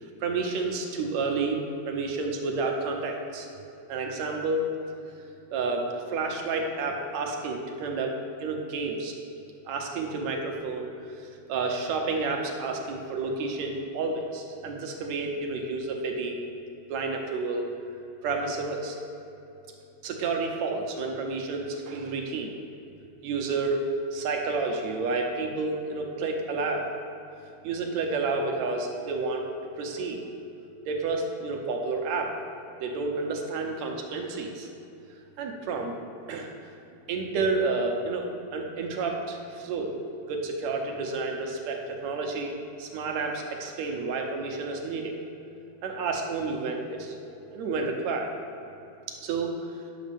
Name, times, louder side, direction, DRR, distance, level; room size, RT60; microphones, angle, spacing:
voice 1, 0.0-3.5 3.9-4.7 5.5-9.2 9.7-16.4 16.9-17.7 18.2-19.0 20.0-22.5 23.2-23.8 24.1-26.9 27.6-29.5 29.8-30.2 30.9-32.4 32.8-34.7 35.4-36.0 36.3-36.5 37.1-40.0 40.3-45.2 45.8-47.2 47.5-48.3 49.1-49.8, right 3 dB, 70° right, 2 dB, 2.1 m, -30 dB
10.0 x 6.4 x 5.2 m, 2.9 s
omnidirectional pair, 3.4 m